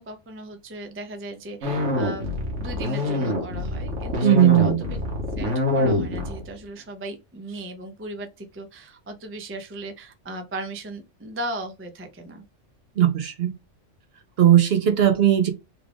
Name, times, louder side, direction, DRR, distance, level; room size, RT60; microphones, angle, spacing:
voice 1, 0.0-2.3 2.6-5.0 5.4-12.4, right 2 dB, 20° right, 0.3 m, -37 dB
sound 1, 1.6-6.6, left 1 dB, 80° right, 1.5 m, -25 dB
voice 2, 4.2-4.8 13.0-13.5 14.4-15.5, right 11 dB, 60° right, 0.8 m, -18 dB
3.4 x 2.4 x 3.3 m
omnidirectional pair, 1.3 m